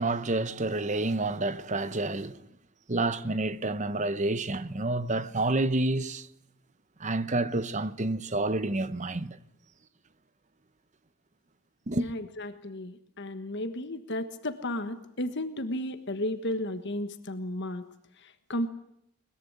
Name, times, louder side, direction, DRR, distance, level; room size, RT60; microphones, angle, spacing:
voice 1, 0.0-2.4 2.9-6.3 7.0-9.4 11.9-12.1, right 2 dB, 35° right, 1.0 m, -29 dB
voice 2, 11.9-17.8 18.2-18.7, left 1 dB, 50° left, 1.4 m, -34 dB
21.5 x 21.0 x 9.6 m
head